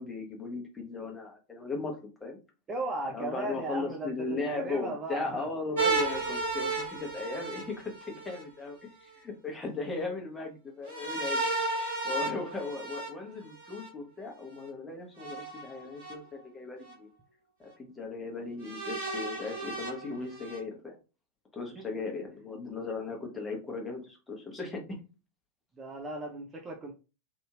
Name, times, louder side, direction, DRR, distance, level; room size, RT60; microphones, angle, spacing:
voice 1, 0.0-2.4 3.1-11.4 12.0-17.1 17.6-21.0 21.5-25.0, left 3 dB, 10° left, 0 dB, 0.8 m, -37 dB
voice 2, 2.7-5.5 21.8-21.9 25.7-26.9, right 2 dB, 20° right, 1 dB, 0.4 m, -36 dB
sound 1, 5.8-8.4 10.9-13.9 15.2-16.1 16.9-17.0 18.6-20.6, right 3 dB, 55° right, 1.5 m, -33 dB
2.9 x 2.6 x 2.3 m, 0.32 s
figure-of-eight pair, 90°, 0 cm